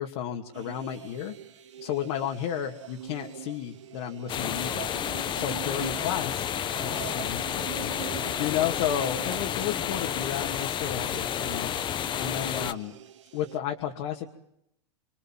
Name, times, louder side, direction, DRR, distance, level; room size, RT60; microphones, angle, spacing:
voice 1, 0.0-1.3 1.8-4.9 5.3-13.0 13.3-14.3, left 10 dB, 65° left, 1 dB, 2.6 m, -33 dB
sound 1, 0.5-13.6, right 9 dB, 85° right, 1.9 m, -43 dB
sound 2, 4.3-12.7, left 9 dB, 30° left, 1.2 m, -31 dB
26.5 x 26.0 x 7.6 m, 0.78 s
hypercardioid pair, 105°, 15 cm